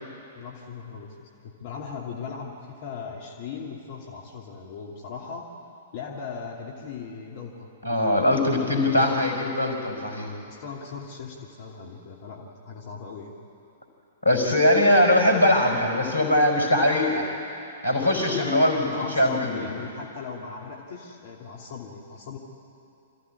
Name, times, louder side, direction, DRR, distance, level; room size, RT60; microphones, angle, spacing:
voice 1, 0.3-5.5 5.9-7.7 8.3-9.2 10.5-13.3 18.0-22.4, left 5 dB, 50° left, -2 dB, 2.7 m, -38 dB
voice 2, 7.8-10.3 14.2-17.3 17.8-18.9 19.1-19.6, left 1 dB, 85° left, 4 dB, 4.7 m, -21 dB
27.0 x 15.0 x 9.8 m, 2.7 s
figure-of-eight pair, 110°, 0 cm